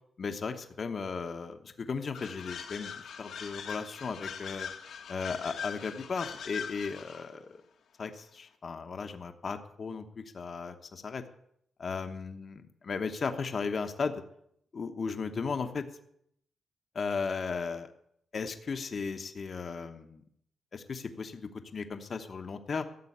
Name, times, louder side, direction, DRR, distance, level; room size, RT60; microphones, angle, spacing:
voice 1, 0.2-4.7 5.1-7.5 8.0-11.2 11.8-14.2 14.7-15.8 16.9-17.9 18.3-20.2 20.7-22.8, left 5 dB, 40° left, 7 dB, 1.1 m, -36 dB
sound 1, 2.1-7.3, left 7 dB, 80° left, 1.6 m, -41 dB
13.5 x 7.7 x 8.7 m, 0.72 s
wide cardioid pair, 155°, 0 cm